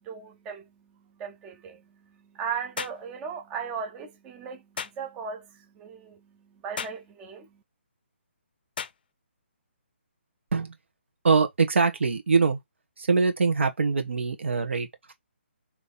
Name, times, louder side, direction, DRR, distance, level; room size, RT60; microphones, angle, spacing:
voice 1, 0.1-0.6 1.2-1.8 2.4-4.6 5.0-5.4 5.8-6.2 6.6-7.5, right 6 dB, 15° right, 0.5 m, -36 dB
sound 1, 2.8-3.0 4.8-5.0 6.8-7.0 8.8-9.0, left 7 dB, 50° left, 0.5 m, -35 dB
voice 2, 11.2-12.6 13.0-15.1, right 4 dB, 75° right, 1.3 m, -23 dB
3.5 x 3.0 x 4.1 m
hypercardioid pair, 160°, 7 cm